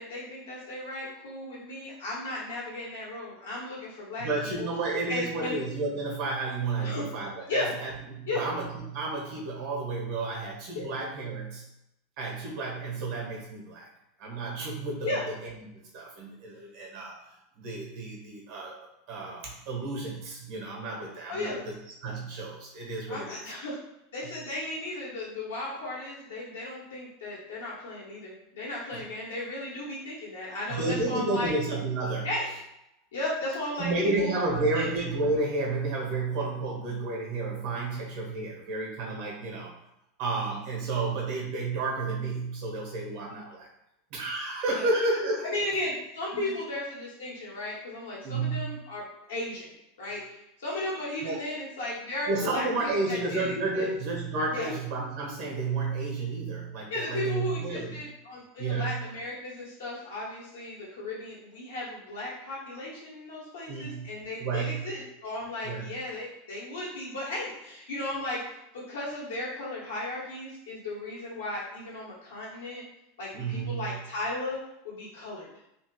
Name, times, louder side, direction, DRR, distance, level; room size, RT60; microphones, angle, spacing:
voice 1, 0.0-4.3 4.6-4.7 5.1-5.6 6.8-7.0 7.5-7.7 8.3-8.4 10.7-10.8 15.0-15.2 21.3-21.6 23.1-23.8 24.1-31.5 32.2-32.5 33.1-34.4 34.7-34.9 44.7-44.8 45.4-49.7 50.0-52.7 52.9-53.4 53.7-53.9 54.5-54.7 56.9-68.4 68.7-72.8 73.2-74.6 74.8-75.5, left 2 dB, 75° left, -6 dB, 1.5 m, -35 dB
voice 2, 4.2-11.6 12.2-13.9 14.2-15.1 15.7-21.8 22.0-23.4 28.9-29.0 30.7-32.3 33.8-39.8 40.2-43.7 44.1-45.4 46.3-46.4 48.2-48.8 51.2-51.4 52.3-57.9 58.6-59.0 63.7-64.1 64.4-64.8 65.6-65.9 73.3-73.9, right 3 dB, 60° right, -2 dB, 1.3 m, -31 dB
3.3 x 2.9 x 3.1 m, 0.83 s
hypercardioid pair, 90°, 0 cm